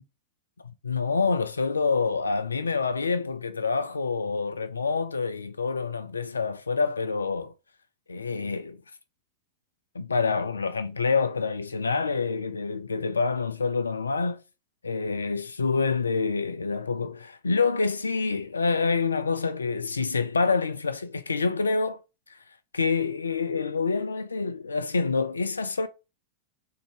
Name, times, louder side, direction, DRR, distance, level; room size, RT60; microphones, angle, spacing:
voice 1, 0.8-7.5 8.1-8.8 9.9-14.4 14.8-22.0 22.3-22.4 22.7-25.9, left 4 dB, 75° left, 0.3 m, -27 dB
3.8 x 2.8 x 4.8 m
figure-of-eight pair, 90°, 0 cm